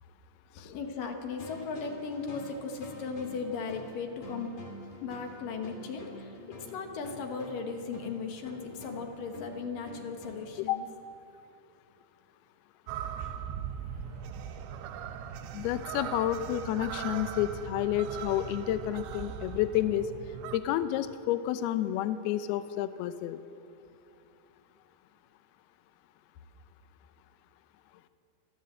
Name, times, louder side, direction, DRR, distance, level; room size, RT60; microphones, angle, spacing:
voice 1, 0.5-4.5 5.0-10.9 13.2-13.4, left 5 dB, 60° left, 4 dB, 2.6 m, -37 dB
sound 1, 1.4-10.6, left 1 dB, 40° left, 3.5 m, -46 dB
sound 2, 12.9-20.6, right 8 dB, 80° right, 3.0 m, -39 dB
voice 2, 15.5-20.1 20.5-23.4, left 12 dB, 80° left, 11 dB, 2.4 m, -30 dB
25.5 x 14.5 x 7.7 m, 2.7 s
omnidirectional pair, 5.2 m